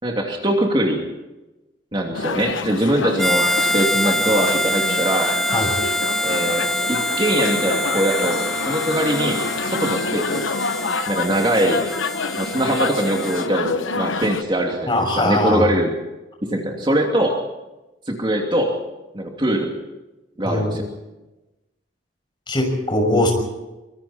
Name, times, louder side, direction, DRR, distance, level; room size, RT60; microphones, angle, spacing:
voice 1, 0.0-1.0 1.9-5.3 6.2-10.4 11.1-11.8 12.4-15.9 16.4-17.4 18.1-18.7 19.1-19.7 20.4-20.8, right 1 dB, 25° right, 1 dB, 2.7 m, -22 dB
sound 1, 2.1-14.4, left 4 dB, 85° left, 1.1 m, -27 dB
Harmonica, 3.2-13.5, equal, ahead, 1.0 m, -25 dB
voice 2, 14.9-15.6 20.4-20.8 22.5-23.3, left 1 dB, 25° left, 3 dB, 6.1 m, -20 dB
25.0 x 24.5 x 4.4 m, 1.0 s
head